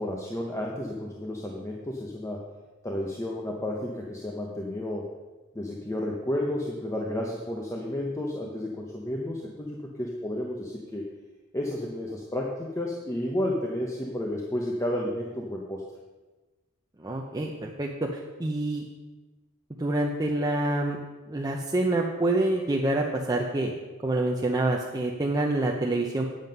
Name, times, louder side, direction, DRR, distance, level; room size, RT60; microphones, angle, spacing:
voice 1, 0.0-2.5 2.8-5.1 5.5-11.0 11.5-15.8, left 1 dB, 15° left, -1 dB, 0.9 m, -32 dB
voice 2, 17.0-18.8 19.8-21.0 21.3-23.7 24.0-26.2, right 2 dB, 20° right, 0 dB, 0.7 m, -27 dB
9.6 x 7.6 x 5.3 m, 1.2 s
head